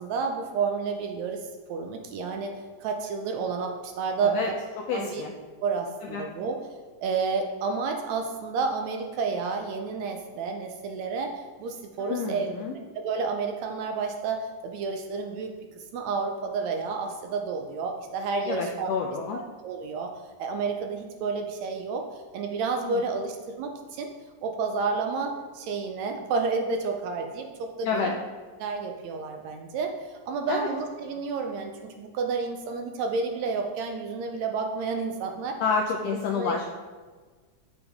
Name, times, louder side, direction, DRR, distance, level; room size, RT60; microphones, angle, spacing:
voice 1, 0.0-2.6 2.8-4.4 4.9-5.2 5.6-6.6 7.0-12.7 13.0-15.5 15.9-18.9 19.3-20.1 20.4-22.1 22.3-24.1 24.4-28.1 28.6-35.6 36.1-36.6, right 4 dB, 75° right, 4 dB, 1.7 m, -30 dB
voice 2, 4.8-5.3 6.1-6.2 12.0-12.8 18.5-19.4 22.8-23.0 27.8-28.1 30.5-30.7 35.6-36.6, left 5 dB, 85° left, 1 dB, 1.4 m, -29 dB
9.0 x 6.8 x 3.5 m, 1.4 s
omnidirectional pair, 3.6 m